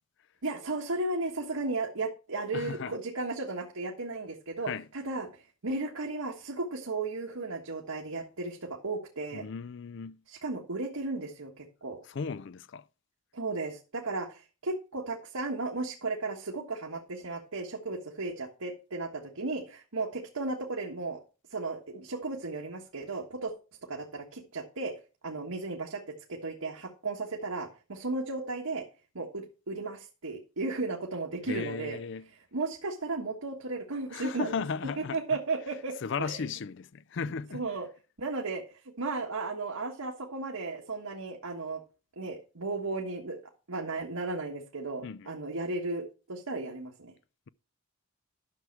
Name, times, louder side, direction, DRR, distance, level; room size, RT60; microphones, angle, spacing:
voice 1, 0.4-5.3 5.6-9.4 10.3-12.0 13.3-21.2 21.5-23.5 23.9-24.9 25.2-26.0 26.3-28.8 29.1-32.0 32.5-34.5 35.0-36.4 37.5-37.9 38.2-38.6 39.0-41.8 42.2-43.4 43.7-47.1, right 3 dB, 90° right, 1.6 m, -35 dB
voice 2, 2.5-3.0 4.7-4.9 9.3-10.2 12.1-12.9 31.5-32.3 34.1-35.2 36.0-37.6 45.0-45.3, left 5 dB, 55° left, 0.4 m, -35 dB
11.5 x 6.4 x 4.5 m
head